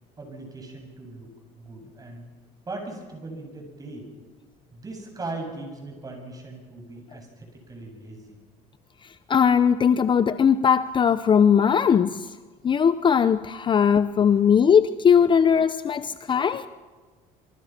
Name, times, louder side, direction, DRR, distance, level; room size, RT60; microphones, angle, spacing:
voice 1, 0.2-2.2 2.7-4.1 4.7-8.4 15.2-15.4, right 2 dB, 25° right, 7.8 m, -39 dB
voice 2, 9.3-12.3 12.6-16.7, left 7 dB, 30° left, 0.7 m, -19 dB
27.0 x 26.0 x 6.0 m
supercardioid pair, 105°, 16 cm